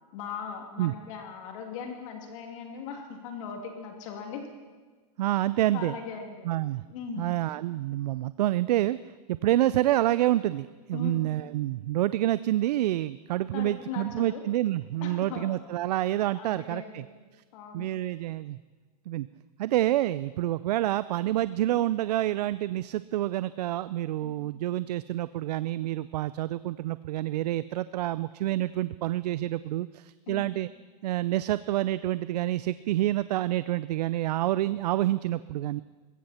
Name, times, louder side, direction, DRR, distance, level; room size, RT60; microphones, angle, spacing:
voice 1, 0.1-4.5 5.7-6.5 6.9-7.3 10.9-11.3 13.5-14.5 15.0-15.6 16.3-17.0 17.5-17.9 24.2-24.5 30.3-30.5, left 6 dB, 50° left, 3 dB, 2.7 m, -39 dB
voice 2, 5.2-5.9 6.5-6.8 7.2-9.0 9.3-17.0 17.3-17.4 17.7-18.6 19.1-19.3 19.6-30.7 31.0-35.8, right 14 dB, 75° right, 16 dB, 0.4 m, -28 dB
20.5 x 16.0 x 4.3 m, 1.4 s
supercardioid pair, 155°, 21 cm